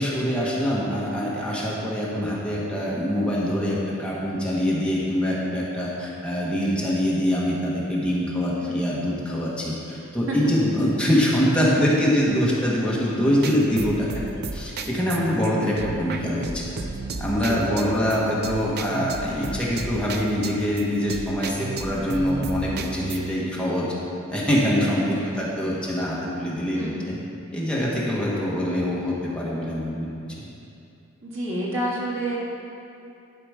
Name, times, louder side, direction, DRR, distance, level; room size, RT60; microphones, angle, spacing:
voice 1, 0.0-14.1 14.5-16.7 17.2-23.9 24.3-27.2 27.5-30.1 30.4-30.5, equal, 5° left, -6 dB, 1.4 m, -24 dB
sound 1, 13.4-23.4, right 3 dB, 50° right, 0.5 m, -33 dB
voice 2, 17.2-18.1 23.8-23.9 25.2-25.6 26.7-27.3 27.8-28.0 31.2-32.4, right 1 dB, 70° right, -5 dB, 2.1 m, -31 dB
11.5 x 5.0 x 4.9 m, 2.7 s
head